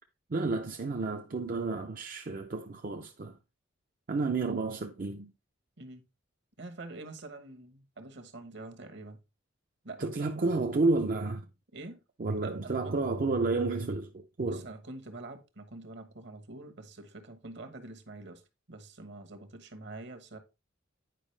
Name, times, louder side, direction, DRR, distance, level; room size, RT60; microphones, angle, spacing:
voice 1, 0.3-3.3 4.1-5.3 10.0-11.5 12.2-14.7, right 3 dB, 45° right, 0.5 m, -31 dB
voice 2, 6.6-9.2 9.8-10.5 11.7-12.0 12.4-13.0 14.4-18.4 18.7-20.4, right 2 dB, 60° right, 1.2 m, -46 dB
9.1 x 5.0 x 3.3 m
head